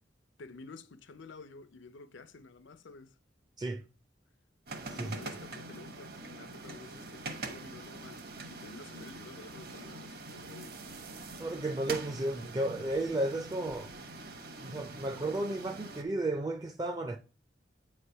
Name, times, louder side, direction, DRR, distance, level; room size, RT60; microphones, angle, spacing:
voice 1, 0.4-3.2 4.9-8.2 8.5-10.8, left 3 dB, 90° left, 0.7 m, -50 dB
sound 1, 4.7-16.0, right 3 dB, 55° right, 1.0 m, -44 dB
voice 2, 11.4-13.9 14.6-17.2, right 2 dB, 20° right, 0.4 m, -33 dB
8.3 x 3.2 x 5.5 m
head